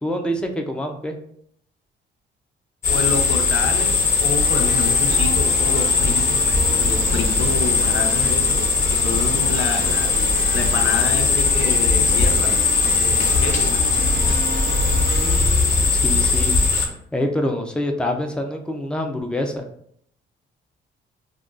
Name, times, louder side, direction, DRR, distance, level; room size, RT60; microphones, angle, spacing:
voice 1, 0.0-1.2 15.1-16.5 17.1-19.7, left 1 dB, 5° left, 3 dB, 0.5 m, -26 dB
sound 1, 2.8-16.8, left 4 dB, 45° left, 1.0 m, -19 dB
voice 2, 2.9-10.1 10.5-12.7 13.0-14.2, left 5 dB, 85° left, 5 dB, 0.5 m, -28 dB
sound 2, 4.4-15.4, right 2 dB, 75° right, 0.8 m, -34 dB
2.5 x 2.3 x 3.6 m, 0.66 s
cardioid pair, 90°, 20 cm